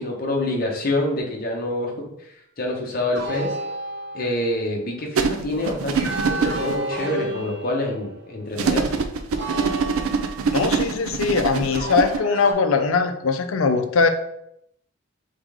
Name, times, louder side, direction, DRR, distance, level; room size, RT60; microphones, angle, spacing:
voice 1, 0.0-2.1 2.6-3.6 4.1-8.9, left 1 dB, 45° left, 0 dB, 0.9 m, -26 dB
sound 1, 3.1-4.6 5.9-8.3 9.4-10.8 11.7-12.5, right 2 dB, 55° right, 0.8 m, -31 dB
sound 2, 5.2-6.7 8.6-12.2, right 5 dB, 90° right, 0.4 m, -24 dB
voice 2, 10.5-14.1, left 4 dB, 85° left, 8 dB, 0.5 m, -21 dB
3.6 x 3.6 x 3.5 m, 0.76 s
head